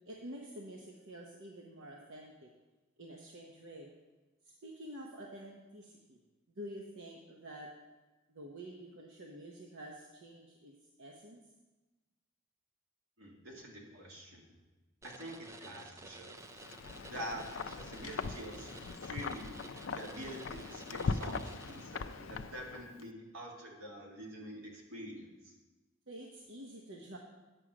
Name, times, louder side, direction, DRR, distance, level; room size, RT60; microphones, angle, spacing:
voice 1, 0.1-2.5 3.0-3.9 4.4-6.2 6.5-7.7 8.3-11.4 26.1-27.2, right 1 dB, 70° right, 0 dB, 0.9 m, -48 dB
voice 2, 13.2-14.4 15.0-16.4 17.1-19.6 19.9-25.5, equal, 90° right, -1 dB, 2.1 m, -46 dB
sound 1, 15.0-22.3, right 2 dB, 15° right, 0.4 m, -53 dB
Wind, 16.5-23.0, left 4 dB, 75° left, 0.4 m, -40 dB
9.1 x 6.2 x 6.1 m, 1.2 s
head